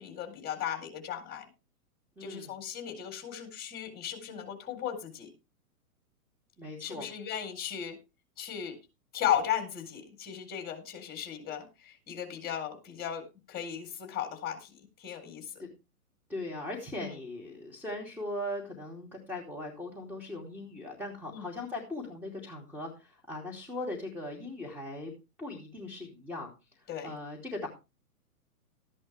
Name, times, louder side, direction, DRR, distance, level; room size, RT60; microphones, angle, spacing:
voice 1, 0.0-1.4 2.2-5.3 6.8-8.0 8.4-8.8 9.1-15.6 17.0-17.2 21.3-21.5 26.9-27.1, left 9 dB, 20° left, 5 dB, 4.0 m, -36 dB
voice 2, 2.2-2.5 6.6-7.1 15.6-15.7 16.3-25.1 25.4-26.5 27.0-27.7, left 1 dB, 5° right, -1 dB, 2.6 m, -39 dB
13.5 x 10.5 x 3.4 m, 0.28 s
hypercardioid pair, 125°, 45 cm